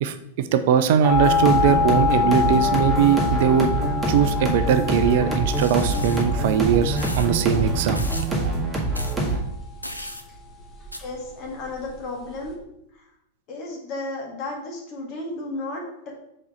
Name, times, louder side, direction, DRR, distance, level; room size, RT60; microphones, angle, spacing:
voice 1, 0.0-3.7 4.1-8.1 8.4-8.5, right 9 dB, 55° right, 10 dB, 0.4 m, -21 dB
sound 1, 1.0-12.5, left 7 dB, 15° left, 1.5 m, -27 dB
sound 2, 1.1-9.4, right 2 dB, 10° right, 1.8 m, -25 dB
sound 3, 5.5-6.2 7.0-7.3 8.0-8.3 8.9-9.2 9.8-10.2 10.9-11.0, left 1 dB, 90° left, 0.5 m, -35 dB
voice 2, 11.0-12.6 12.9-13.1 13.5-16.1, left 2 dB, 40° left, -1 dB, 1.9 m, -33 dB
4.7 x 4.3 x 5.0 m, 0.79 s
figure-of-eight pair, 95°, 0 cm